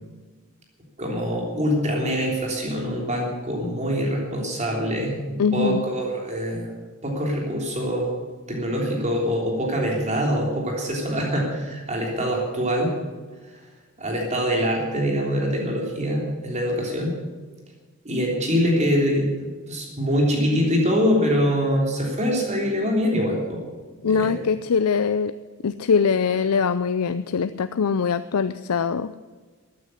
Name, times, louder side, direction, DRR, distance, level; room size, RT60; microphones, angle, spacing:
voice 1, 1.0-5.2 5.5-6.7 7.0-8.1 8.5-12.9 14.0-17.2 18.0-23.6 24.0-24.4, equal, 30° right, -1 dB, 3.5 m, -24 dB
voice 2, 5.4-5.9 24.0-25.3 25.6-29.1, left 6 dB, 85° left, 12 dB, 0.5 m, -22 dB
14.0 x 9.5 x 10.0 m, 1.3 s
head